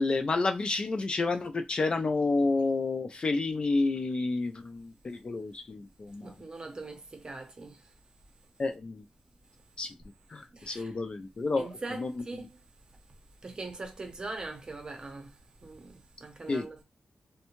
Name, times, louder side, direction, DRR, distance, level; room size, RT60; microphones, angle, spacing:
voice 1, 0.0-6.3 8.6-9.0 9.8-9.9 10.3-12.5 16.5-16.7, left 3 dB, 40° left, 0.4 m, -30 dB
voice 2, 6.2-7.8 10.5-11.0 11.6-12.5 13.4-15.3 15.6-16.8, right 3 dB, 35° right, 0.7 m, -41 dB
2.6 x 2.1 x 2.9 m
wide cardioid pair, 110°, 3 cm